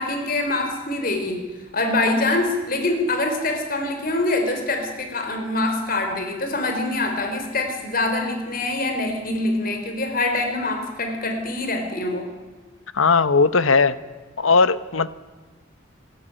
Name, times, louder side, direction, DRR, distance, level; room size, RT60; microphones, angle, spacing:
voice 1, 0.0-1.4 1.7-12.3, left 2 dB, 45° left, 5 dB, 3.7 m, -24 dB
voice 2, 12.9-14.0 14.4-15.1, left 4 dB, 75° left, 15 dB, 1.0 m, -18 dB
26.0 x 14.0 x 8.9 m, 1.3 s
head